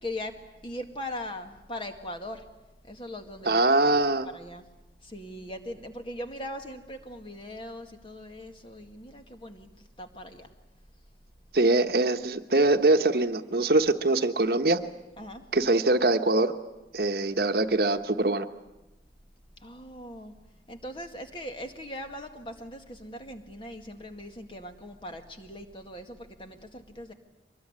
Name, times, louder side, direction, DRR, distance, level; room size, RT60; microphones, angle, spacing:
voice 1, 0.0-0.3 0.6-2.4 2.9-4.7 5.0-9.7 10.0-10.5 15.2-15.4 19.6-20.3 20.7-27.1, left 1 dB, 30° left, 5 dB, 2.0 m, -40 dB
voice 2, 3.5-4.3 11.5-14.8 15.5-16.5 16.9-18.5, right 2 dB, 60° right, 8 dB, 1.2 m, -23 dB
24.0 x 20.5 x 9.7 m, 0.99 s
head